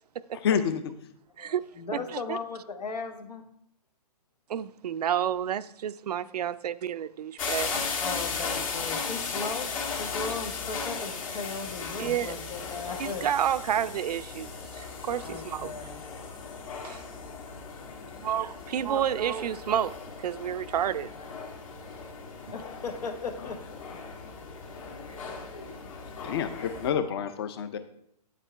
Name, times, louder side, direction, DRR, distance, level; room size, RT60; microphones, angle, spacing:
voice 1, 0.3-0.8 26.2-27.8, left 7 dB, 40° left, 0.6 m, -28 dB
voice 2, 1.4-3.4 8.0-9.7 10.0-13.3 15.2-17.2 17.5-18.3 21.6-21.9 22.5-23.8 24.2-26.4, left 4 dB, 80° left, 1.4 m, -39 dB
voice 3, 4.5-8.0 12.0-12.3 13.0-15.7 16.8-17.0 18.2-19.9 20.2-21.1, right 9 dB, 75° right, 0.4 m, -30 dB
sound 1, 7.4-26.9, left 5 dB, 55° left, 1.8 m, -37 dB
8.6 x 7.4 x 3.3 m
hypercardioid pair, 155°, 20 cm